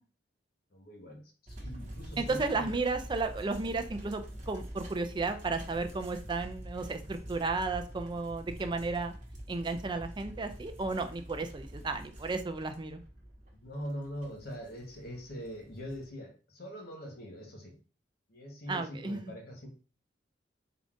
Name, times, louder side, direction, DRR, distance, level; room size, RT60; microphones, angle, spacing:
voice 1, 0.7-1.2 1.6-2.7 13.5-17.7 18.3-19.7, equal, 55° left, 2 dB, 1.0 m, -42 dB
sound 1, 1.5-16.1, equal, 40° right, 1.0 m, -46 dB
voice 2, 2.2-9.1 9.5-13.0 18.7-19.3, right 3 dB, 25° right, 7 dB, 0.4 m, -33 dB
3.8 x 2.4 x 3.6 m, 0.36 s
head